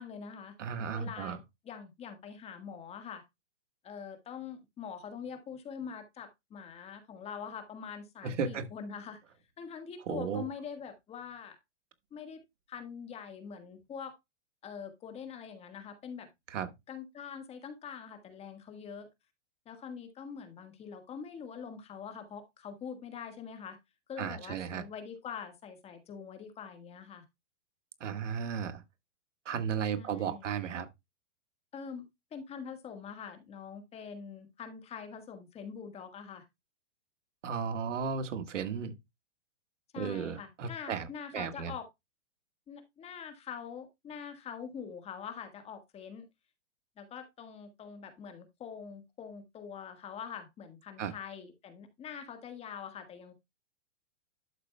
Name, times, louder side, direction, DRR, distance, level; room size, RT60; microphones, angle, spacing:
voice 1, 0.0-0.6 0.9-3.2 3.8-9.2 9.6-11.6 12.1-12.4 12.7-14.1 14.6-16.3 16.9-19.1 19.6-23.8 24.1-27.2 29.9-30.5 31.7-32.1 32.3-36.4 39.9-41.9 42.7-46.2 47.0-53.3, left 7 dB, 15° left, 1.5 m, -44 dB
voice 2, 0.6-1.4 8.2-8.6 10.1-10.4 16.5-16.7 24.2-24.8 28.0-28.8 29.4-30.9 37.4-38.9 40.0-41.1 41.3-41.7 51.0-51.1, right 6 dB, 80° right, 1.5 m, -34 dB
11.5 x 6.3 x 2.2 m
hypercardioid pair, 145°, 36 cm